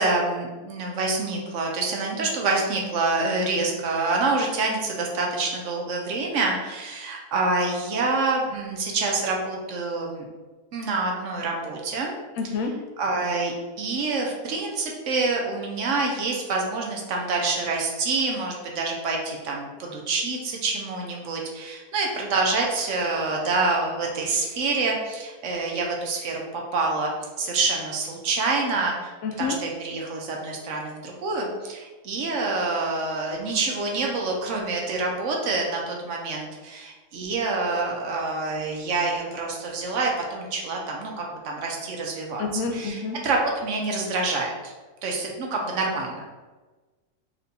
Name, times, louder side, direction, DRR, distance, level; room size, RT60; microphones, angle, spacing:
voice 1, 0.0-10.3 10.7-12.1 13.0-26.4 26.7-27.1 27.4-29.1 29.4-42.4 42.7-44.7 45.0-46.2, right 3 dB, 65° right, 0 dB, 0.8 m, -27 dB
voice 2, 12.4-12.7 29.2-29.6 42.4-43.2, left 4 dB, 70° left, 3 dB, 0.9 m, -28 dB
4.2 x 3.3 x 2.6 m, 1.3 s
omnidirectional pair, 1.7 m